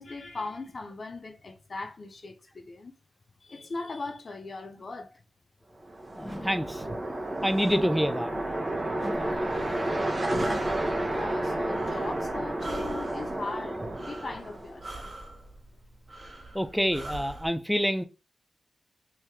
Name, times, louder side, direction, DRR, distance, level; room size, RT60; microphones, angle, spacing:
voice 1, 0.0-2.9 3.4-5.1 11.1-15.1, left 3 dB, 55° left, 0.5 m, -39 dB
sound 1, 5.8-14.9, right 1 dB, 30° right, 0.9 m, -31 dB
sound 2, 6.2-6.8 7.6-8.2 8.9-9.5 10.3-10.9, equal, 15° left, 1.1 m, -42 dB
voice 2, 6.2-6.8 7.4-8.3 16.5-18.0, equal, ahead, 0.4 m, -27 dB
Breathing, 9.1-17.5, right 1 dB, 50° right, 1.2 m, -44 dB
3.0 x 2.7 x 3.5 m
supercardioid pair, 40°, 0 cm